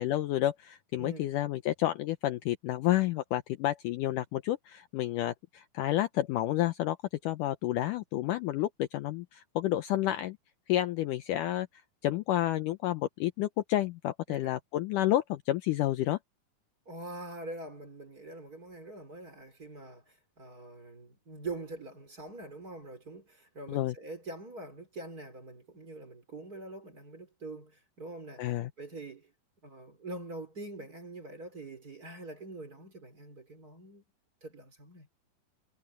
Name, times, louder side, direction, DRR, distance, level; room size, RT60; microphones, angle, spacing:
voice 1, 0.0-7.0 7.2-10.4 10.7-11.7 12.0-16.2 23.7-24.0 28.4-28.7, left 14 dB, 80° left, 1.9 m, -30 dB
voice 2, 1.0-1.3 14.3-14.4 16.9-29.3 29.6-34.0 34.4-35.1, right 2 dB, 25° right, 4.1 m, -44 dB
omnidirectional pair, 4.5 m